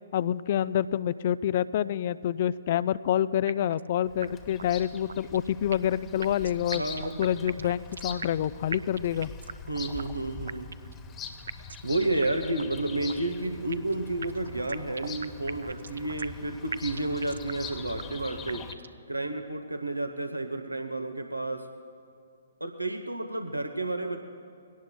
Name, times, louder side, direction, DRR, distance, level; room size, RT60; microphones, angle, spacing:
voice 1, 0.1-6.8 7.2-9.3, left 10 dB, 45° left, 17 dB, 0.3 m, -27 dB
sound 1, 3.5-3.9 4.2-4.3 4.6-4.7 5.1-5.9 6.2-8.4 8.7-9.7 10.0-10.1 10.5-11.0 11.5-11.9 12.2-12.3 12.6-12.7 13.1-13.9 14.2-16.4 16.7-17.7 18.0-18.1 18.5-19.0, right 5 dB, 70° right, 0.3 m, -39 dB
Bird vocalization bird call bird song, 4.1-18.7, left 5 dB, 20° left, 0.9 m, -43 dB
voice 2, 6.7-7.2 9.7-10.8 11.8-18.7 19.1-21.7 22.6-24.2, right 2 dB, 90° right, 6 dB, 0.9 m, -31 dB
22.0 x 17.5 x 2.2 m, 2.5 s
figure-of-eight pair, 125°, 0 cm